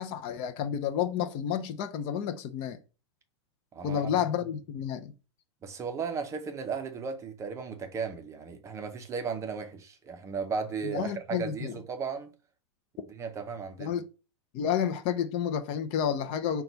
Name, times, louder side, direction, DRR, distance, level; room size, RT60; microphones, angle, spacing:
voice 1, 0.0-2.8 3.8-5.1 10.9-11.8 13.8-14.1 14.5-16.6, left 8 dB, 40° left, 0.5 m, -30 dB
voice 2, 3.7-4.1 5.6-12.3 13.1-13.9, right 5 dB, 20° right, 0.6 m, -35 dB
5.8 x 2.3 x 3.9 m
hypercardioid pair, 135°, 15 cm